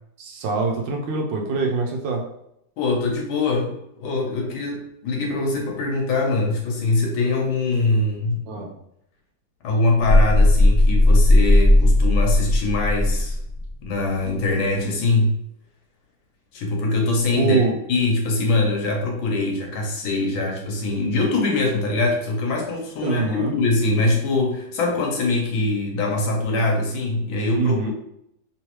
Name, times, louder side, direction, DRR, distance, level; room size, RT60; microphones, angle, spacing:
voice 1, 0.2-2.2 8.5-8.8 17.4-17.8 23.0-23.5 27.6-27.9, right 4 dB, 75° right, 1 dB, 1.3 m, -23 dB
voice 2, 2.8-8.4 9.6-13.4 13.8-15.4 16.5-17.6 17.9-27.9, left 2 dB, 85° left, 0 dB, 1.6 m, -23 dB
sound 1, 10.0-13.7, left 1 dB, 40° left, 1.2 m, -16 dB
3.6 x 3.1 x 3.0 m, 0.77 s
omnidirectional pair, 2.1 m